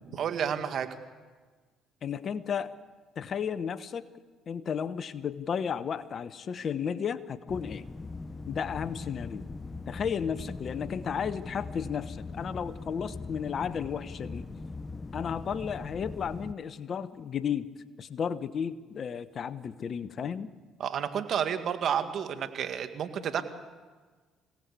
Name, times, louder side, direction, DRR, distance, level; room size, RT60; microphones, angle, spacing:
voice 1, 0.1-0.9 20.8-23.4, right 8 dB, 60° right, 8 dB, 2.0 m, -30 dB
voice 2, 2.0-2.7 3.2-4.0 4.5-7.8 8.5-9.4 9.9-14.4 15.1-17.7 18.0-20.5, left 7 dB, 50° left, 14 dB, 1.1 m, -33 dB
sound 1, 7.5-16.5, left 3 dB, 30° left, 0.8 m, -40 dB
26.0 x 17.5 x 8.4 m, 1.4 s
supercardioid pair, 60°, 0 cm